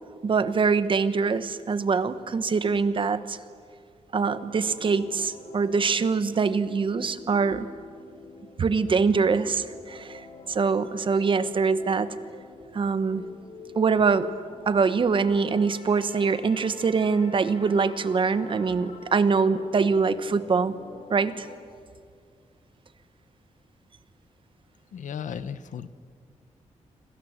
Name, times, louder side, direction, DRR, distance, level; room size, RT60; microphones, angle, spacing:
voice 1, 0.2-3.4 4.1-7.7 8.6-10.2 10.5-12.2 12.7-13.2 13.7-14.3 14.7-20.7 21.1-21.5, right 5 dB, 40° right, 13 dB, 1.2 m, -24 dB
sound 1, 4.4-21.6, left 4 dB, 70° left, 3.9 m, -46 dB
voice 2, 24.9-25.9, left 8 dB, 90° left, 13 dB, 1.2 m, -35 dB
27.0 x 26.0 x 8.2 m, 2.1 s
wide cardioid pair, 160°, 13 cm